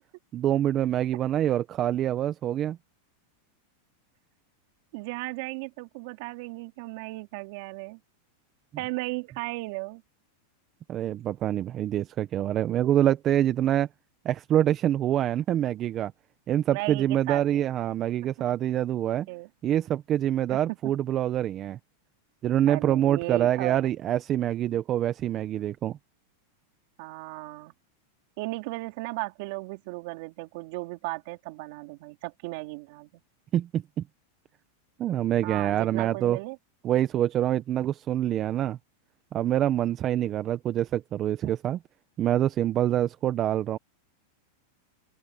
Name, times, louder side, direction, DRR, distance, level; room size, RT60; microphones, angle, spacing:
voice 1, 0.3-2.8 10.9-13.9 14.2-16.1 16.5-19.3 19.6-21.8 22.4-26.0 33.5-33.8 35.0-36.4 36.8-38.8 39.3-41.8 42.2-43.8, right 11 dB, 30° right, 0.8 m, -25 dB
voice 2, 4.9-8.0 8.8-10.0 16.7-17.7 19.3-19.5 20.5-20.8 22.7-23.8 27.0-27.7 28.4-33.2 35.4-36.6 41.4-41.5, right 24 dB, 60° right, 3.3 m, -36 dB
supercardioid pair, 135°, 0 cm